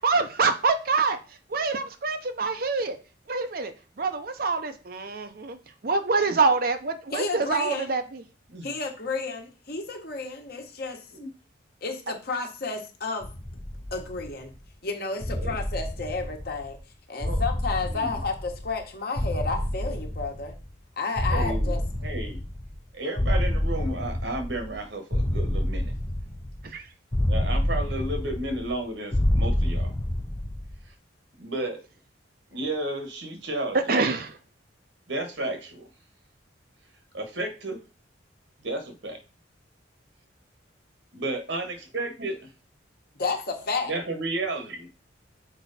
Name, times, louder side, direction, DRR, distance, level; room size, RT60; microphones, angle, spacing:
voice 1, 0.0-1.2 1.5-3.0 3.3-3.7 4.0-5.6 5.8-8.0 26.7-26.8 33.9-34.4, right 4 dB, 50° right, 8 dB, 0.6 m, -25 dB
voice 2, 7.1-7.9 8.6-11.1 11.8-13.3 13.9-14.5 14.8-16.8 17.1-20.6 21.0-21.8 43.1-43.9, left 3 dB, 50° left, 3 dB, 1.3 m, -31 dB
sound 1, 13.2-14.6 15.2-16.8 17.2-18.8 19.2-20.7 21.2-22.8 23.2-24.8 25.1-26.7 27.1-28.8 29.1-30.7, left 1 dB, 15° left, 0.5 m, -28 dB
voice 3, 21.3-21.7 22.0-22.4 22.9-25.9 27.3-29.9 31.4-31.8 32.5-33.9 35.1-35.9 37.1-37.8 38.6-39.2 41.1-42.5 43.9-44.9, right 2 dB, 70° right, 5 dB, 1.4 m, -32 dB
6.0 x 4.6 x 4.1 m, 0.34 s
head